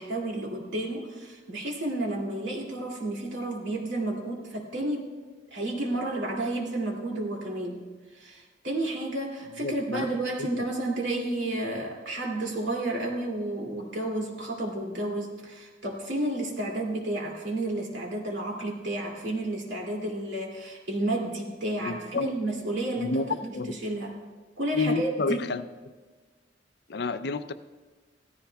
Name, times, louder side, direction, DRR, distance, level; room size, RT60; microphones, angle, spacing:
voice 1, 0.0-5.1 5.5-7.8 8.1-24.1 24.6-25.4, right 1 dB, 80° right, -1 dB, 2.5 m, -31 dB
voice 2, 9.6-10.1 10.4-10.5 21.8-22.3 23.0-23.7 24.7-25.6 26.9-27.5, left 3 dB, 60° left, 11 dB, 0.5 m, -29 dB
17.5 x 14.5 x 2.3 m, 1.4 s
head